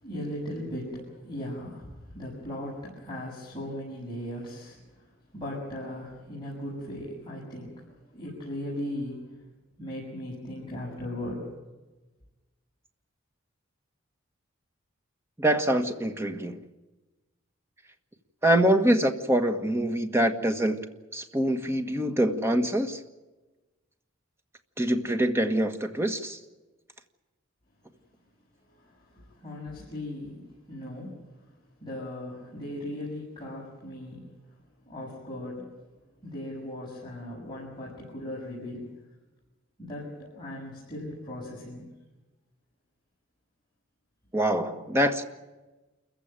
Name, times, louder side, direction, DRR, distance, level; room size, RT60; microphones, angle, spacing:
voice 1, 0.0-1.9 2.1-4.8 5.3-9.2 9.8-11.5 29.4-31.1 31.8-34.3 34.9-35.7 36.2-38.8 39.8-41.8, left 1 dB, 25° left, -6 dB, 7.0 m, -37 dB
voice 2, 15.4-16.6 18.4-20.8 21.1-23.0 24.8-26.4 44.3-45.2, right 1 dB, 15° right, 6 dB, 1.6 m, -25 dB
28.0 x 15.5 x 9.1 m, 1.1 s
head